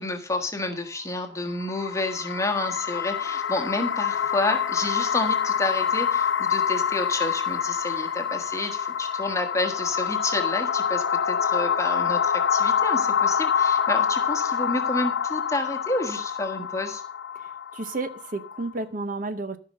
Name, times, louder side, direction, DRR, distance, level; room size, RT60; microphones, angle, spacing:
voice 1, 0.0-17.0, left 2 dB, 15° left, 1.5 m, -29 dB
sound 1, 1.5-18.7, left 7 dB, 85° left, 0.7 m, -26 dB
voice 2, 17.7-19.6, right 3 dB, 45° right, 0.8 m, -31 dB
14.5 x 5.7 x 6.4 m
head